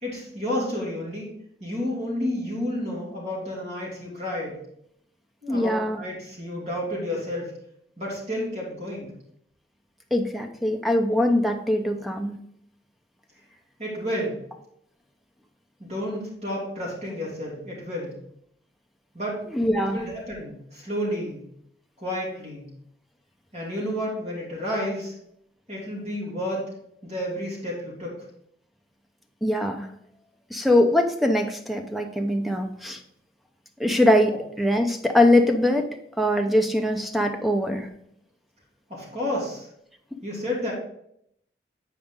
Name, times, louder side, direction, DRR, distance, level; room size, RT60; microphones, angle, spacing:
voice 1, 0.0-4.6 5.4-7.5 8.0-9.1 13.8-14.4 15.8-18.1 19.1-19.4 19.7-21.4 22.0-22.7 23.5-25.1 25.7-26.7 27.0-28.1 38.9-39.7 40.2-40.7, left 1 dB, 35° right, -4 dB, 2.9 m, -31 dB
voice 2, 5.5-6.0 10.1-12.4 19.5-20.0 29.4-29.9 30.5-33.0 33.8-35.9 36.2-37.9, left 1 dB, ahead, 4 dB, 0.6 m, -22 dB
8.8 x 4.9 x 3.7 m, 0.72 s
head